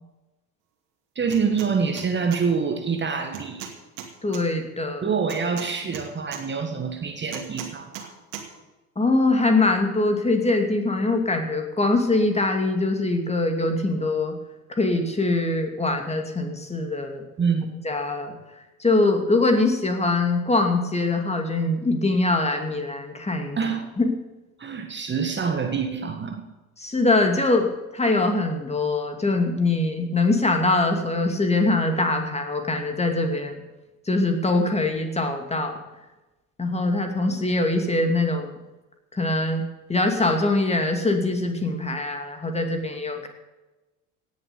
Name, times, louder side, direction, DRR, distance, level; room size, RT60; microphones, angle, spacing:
voice 1, 1.1-3.7 5.0-8.1 17.4-17.7 23.6-23.8 24.6-26.4, right 5 dB, 25° right, 5 dB, 1.7 m, -26 dB
sound 1, 1.3-1.7 2.0-2.4 3.3-4.4 5.3-6.4 7.3-8.1 8.3-8.5, right 10 dB, 60° right, 2.5 m, -37 dB
voice 2, 4.2-5.1 9.0-14.4 14.7-17.2 17.8-18.3 18.8-23.6 24.0-24.1 26.8-27.7 27.9-33.6 34.1-35.8 36.6-38.5 39.1-43.3, left 2 dB, 15° left, 4 dB, 2.6 m, -23 dB
17.5 x 7.4 x 8.2 m, 1.1 s
figure-of-eight pair, 65°, 45 cm